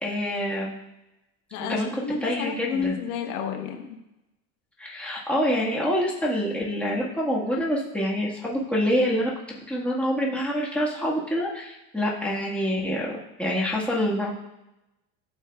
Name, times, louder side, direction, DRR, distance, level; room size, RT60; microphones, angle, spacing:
voice 1, 0.0-0.7 1.6-3.0 4.8-9.3 9.7-14.3, equal, 5° left, -5 dB, 1.5 m, -26 dB
voice 2, 1.5-4.0, left 6 dB, 90° left, 3 dB, 1.1 m, -31 dB
12.0 x 4.6 x 2.3 m, 0.94 s
supercardioid pair, 100°, 42 cm